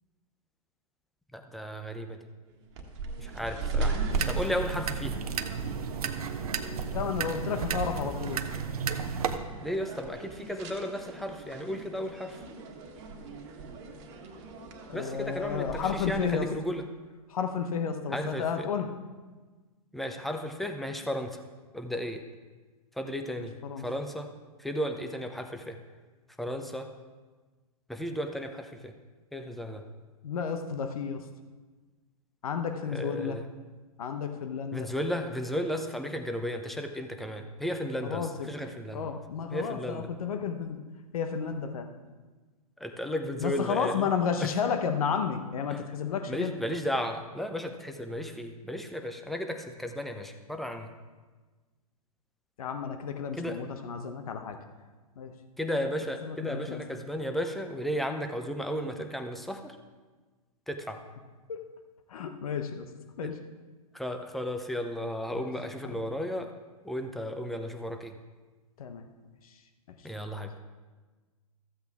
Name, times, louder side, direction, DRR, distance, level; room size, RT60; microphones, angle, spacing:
voice 1, 1.3-2.3 3.2-4.0 4.3-5.2 9.6-12.4 14.9-16.8 18.1-18.7 19.9-21.4 21.7-22.3 23.0-24.3 24.6-25.8 26.4-26.9 27.9-28.9 29.3-29.8 32.9-33.5 34.7-39.1 39.5-40.1 42.8-44.1 44.4-44.5 45.7-45.8 46.3-50.9 53.3-53.6 55.6-59.8 60.7-61.0 63.2-63.3 63.9-66.5 66.8-68.2 70.0-70.6, equal, ahead, 5 dB, 0.7 m, -34 dB
sound 1, 2.7-16.3, right 3 dB, 45° right, 1.6 m, -38 dB
sound 2, 4.1-9.4, right 6 dB, 75° right, 0.8 m, -33 dB
voice 2, 6.9-8.4 14.9-16.5 17.3-18.9 23.6-23.9 30.2-31.2 32.4-33.4 34.0-34.9 38.0-38.5 38.9-40.8 41.1-41.9 43.4-46.5 52.6-54.6 55.2-55.3 56.2-56.8 61.5-61.6 62.1-62.9 63.2-63.3 65.3-65.4 65.9-66.1 68.8-69.1 69.4-69.5 69.9-70.0, left 6 dB, 70° left, 6 dB, 1.0 m, -32 dB
14.0 x 8.0 x 3.5 m, 1.3 s
hypercardioid pair, 120°, 19 cm